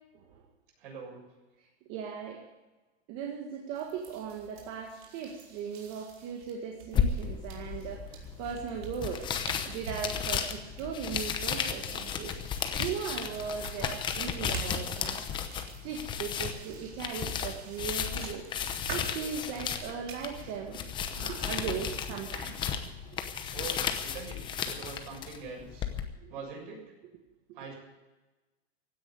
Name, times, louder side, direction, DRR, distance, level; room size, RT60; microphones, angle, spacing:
voice 1, 0.8-1.2 23.5-25.9 26.3-26.9 27.5-27.7, right 4 dB, 55° right, 0 dB, 7.1 m, -43 dB
voice 2, 1.9-2.4 3.1-9.2 9.7-12.3 12.8-15.2 15.8-18.4 18.9-20.9 21.2-22.5 26.2-26.4, right 7 dB, 35° right, 1 dB, 1.8 m, -38 dB
sound 1, 3.7-20.6, right 5 dB, 70° right, 4.1 m, -48 dB
sound 2, 6.9-26.0, left 7 dB, 15° left, 0.8 m, -34 dB
16.0 x 10.0 x 8.3 m, 1.1 s
supercardioid pair, 165°, 32 cm